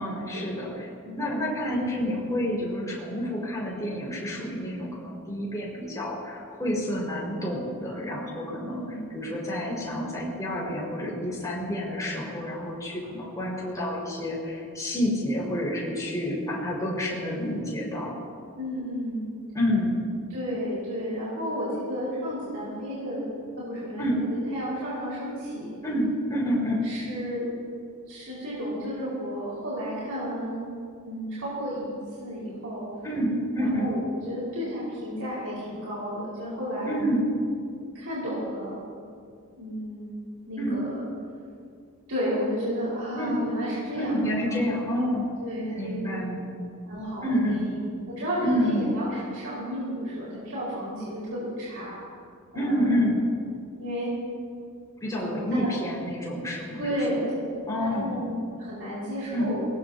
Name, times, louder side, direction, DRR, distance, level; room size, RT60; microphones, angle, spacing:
voice 1, 0.0-18.1 19.5-20.0 24.0-24.2 25.8-26.8 33.0-33.9 36.8-37.3 40.6-40.8 43.1-43.4 43.9-45.3 45.8-46.5 47.2-47.7 48.4-48.9 52.5-53.2 55.0-57.0 57.7-58.2 59.3-59.5, equal, 15° left, -5 dB, 5.2 m, -28 dB
voice 2, 1.0-1.4 4.3-4.6 8.7-9.0 18.6-19.3 20.3-23.2 23.6-25.8 26.8-27.5 28.1-30.7 31.0-31.9 32.2-32.9 33.7-36.9 37.9-38.8 39.5-40.1 40.5-41.0 42.1-44.6 45.4-46.2 46.8-47.7 48.1-52.0 52.5-53.0 53.8-54.1 55.1-55.7 56.7-57.4 57.7-59.6, equal, 75° right, -8 dB, 5.1 m, -32 dB
23.0 x 20.0 x 2.9 m, 2.2 s
head